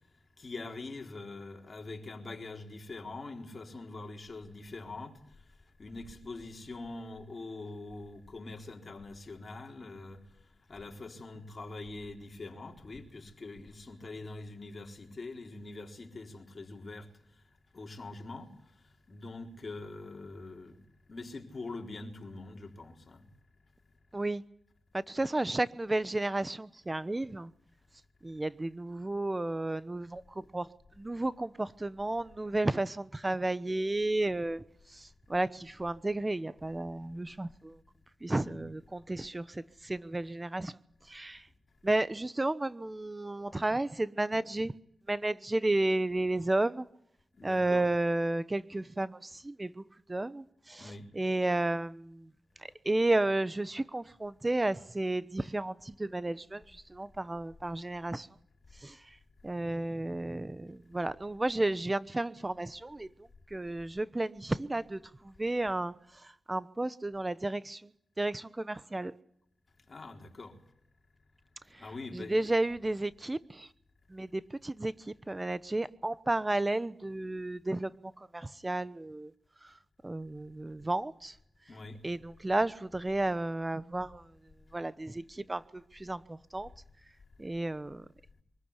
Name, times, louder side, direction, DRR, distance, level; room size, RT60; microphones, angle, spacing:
voice 1, 0.4-5.1 5.8-10.2 10.7-17.1 17.7-18.5 19.1-20.8 21.1-23.3 38.4-38.7 47.4-47.9 50.8-51.1 69.9-70.6 71.8-72.5 81.7-82.0, left 3 dB, 50° left, 4.1 m, -44 dB
voice 2, 24.1-24.4 24.9-27.5 28.2-30.7 31.0-37.8 38.2-40.8 41.1-41.5 41.8-44.7 45.1-46.9 47.4-49.8 50.1-52.3 52.6-58.3 58.8-59.2 59.4-63.1 63.5-67.9 68.2-69.1 71.7-73.7 74.1-79.3 79.6-79.7 80.0-81.4 82.0-84.3 84.7-86.7 87.4-88.0, right 2 dB, 25° right, 1.0 m, -32 dB
24.0 x 14.5 x 9.9 m
cardioid pair, 45°, 0 cm